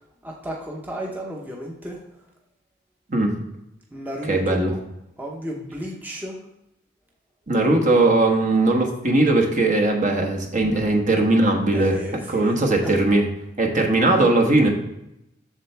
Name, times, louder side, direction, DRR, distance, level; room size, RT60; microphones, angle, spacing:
voice 1, 0.0-2.0 3.9-4.8 5.2-6.4 10.7-10.9 11.7-12.9, equal, 10° right, -2 dB, 0.9 m, -34 dB
voice 2, 4.3-4.7 7.5-11.9 12.3-13.2 13.6-14.7, right 2 dB, 40° right, 2 dB, 1.3 m, -19 dB
7.2 x 6.8 x 3.4 m, 0.83 s
head